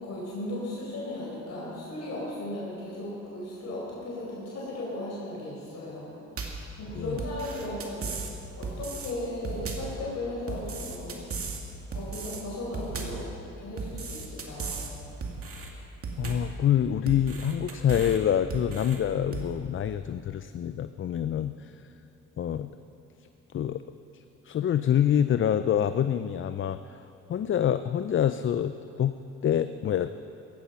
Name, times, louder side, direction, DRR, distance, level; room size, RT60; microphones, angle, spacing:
voice 1, 0.0-6.2 6.8-8.1 8.6-11.3 11.9-13.3 13.6-14.9, left 1 dB, 60° left, -5 dB, 4.8 m, -36 dB
sound 1, 6.4-6.7 7.2-8.3 8.6-9.1 9.4-10.0 10.5-11.6 11.9-12.4 12.7-13.3 13.8-14.9 15.2-15.7 16.0-16.5 17.1-18.2 18.5-19.0 19.3-19.5, right 4 dB, 50° right, 2.3 m, -36 dB
voice 2, 16.2-21.7 22.4-22.7 23.5-23.8 24.4-27.0 27.3-30.1, left 9 dB, 40° left, 11 dB, 0.5 m, -26 dB
16.5 x 14.5 x 5.7 m, 2.9 s
cardioid pair, 90°, 30 cm